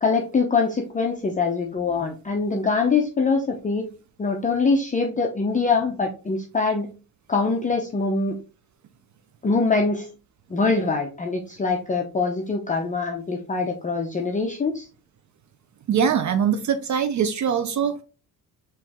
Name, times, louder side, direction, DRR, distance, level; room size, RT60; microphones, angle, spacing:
voice 1, 0.0-3.8 4.2-6.9 7.3-8.3 9.4-10.1 10.5-14.9, left 4 dB, 20° left, 1 dB, 0.6 m, -23 dB
voice 2, 15.9-18.0, right 7 dB, 50° right, 10 dB, 0.5 m, -22 dB
4.4 x 3.1 x 3.5 m, 0.34 s
cardioid pair, 100°, 37 cm